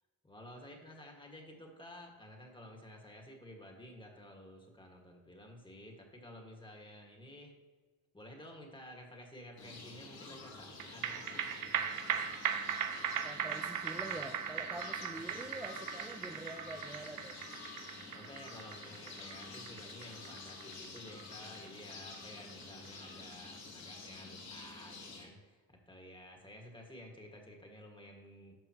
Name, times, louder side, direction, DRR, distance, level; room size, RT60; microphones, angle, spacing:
voice 1, 0.2-7.5 8.1-11.5 15.2-15.4 18.1-28.5, left 1 dB, 10° left, 1 dB, 1.8 m, -53 dB
sound 1, 9.6-25.2, left 3 dB, 65° left, 2.5 m, -49 dB
sound 2, 10.8-23.5 23.8-23.9, right 8 dB, 55° right, 0.7 m, -39 dB
voice 2, 13.2-17.4, right 1 dB, 5° right, 3 dB, 0.6 m, -46 dB
12.0 x 5.6 x 3.0 m, 1.3 s
cardioid pair, 90°, 39 cm